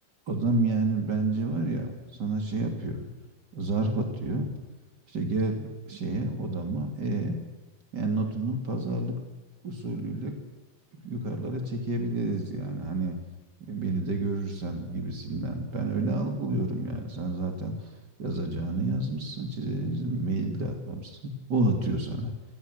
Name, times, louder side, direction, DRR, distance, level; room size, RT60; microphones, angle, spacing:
voice 1, 0.3-3.1 3.5-4.5 5.1-7.4 7.9-9.2 9.6-10.4 11.0-13.2 13.7-17.9 18.2-22.3, right 2 dB, 70° right, 5 dB, 3.4 m, -29 dB
28.5 x 19.0 x 8.1 m, 1.1 s
omnidirectional pair, 1.9 m